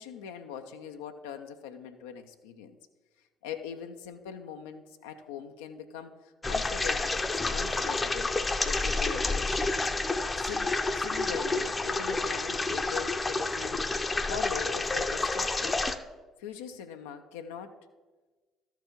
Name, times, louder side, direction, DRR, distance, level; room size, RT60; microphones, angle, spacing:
voice 1, 0.0-2.8 3.4-7.1 7.5-8.4 8.6-9.7 10.4-13.8 14.2-15.8 16.4-17.8, left 8 dB, 70° left, 6 dB, 0.4 m, -41 dB
sound 1, 6.4-16.0, left 3 dB, 20° left, 0.6 m, -29 dB
13.0 x 4.6 x 5.1 m, 1.3 s
figure-of-eight pair, 50°, 0 cm